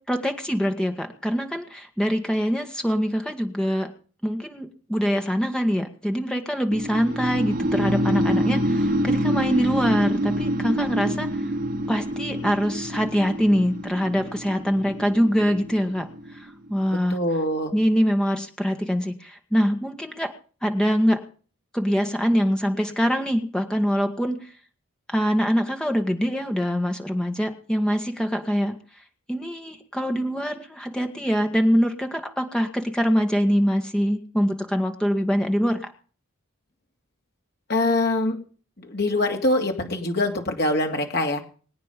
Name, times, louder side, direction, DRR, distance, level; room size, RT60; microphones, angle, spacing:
voice 1, 0.1-3.9 4.2-11.3 11.9-16.1 16.3-17.2 17.7-20.3 20.6-21.2 21.7-24.4 25.1-28.7 29.3-35.8, equal, 5° left, 4 dB, 1.8 m, -24 dB
sound 1, 6.7-16.7, equal, 45° right, 3.3 m, -26 dB
voice 2, 17.1-17.7 37.7-38.4 38.9-41.4, left 2 dB, 50° left, 3 dB, 2.8 m, -23 dB
23.5 x 9.4 x 5.3 m, 0.41 s
head